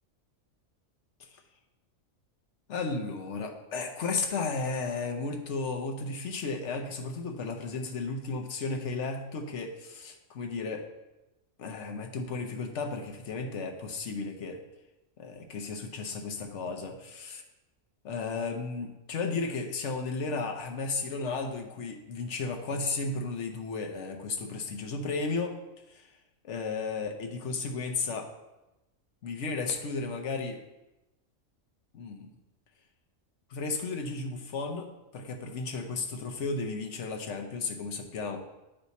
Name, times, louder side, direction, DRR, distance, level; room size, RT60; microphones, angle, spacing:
voice 1, 2.7-10.9 11.6-14.6 15.2-17.4 18.0-25.6 25.9-26.1 26.4-28.3 29.2-30.6 31.9-32.3 33.5-38.4, left 4 dB, 65° left, 4 dB, 1.1 m, -34 dB
9.3 x 3.3 x 4.1 m, 0.98 s
omnidirectional pair, 1.4 m